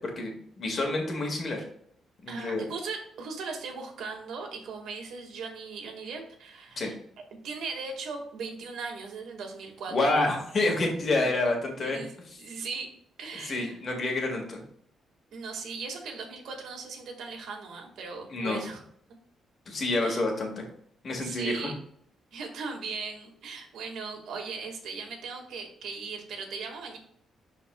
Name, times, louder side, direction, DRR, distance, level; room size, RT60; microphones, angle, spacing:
voice 1, 0.0-1.6 2.2-2.6 6.8-6.9 9.9-12.0 12.3-12.4 13.4-14.6 18.3-18.6 19.7-20.6 21.0-21.7, left 2 dB, 40° left, 2 dB, 1.9 m, -28 dB
voice 2, 2.3-6.9 7.4-10.0 11.2-11.4 11.8-12.9 13.2-13.8 15.3-18.8 20.0-20.2 21.2-21.7 22.3-27.0, right 4 dB, 75° right, 2 dB, 1.8 m, -38 dB
11.5 x 4.2 x 2.3 m, 0.67 s
cardioid pair, 125°, 0 cm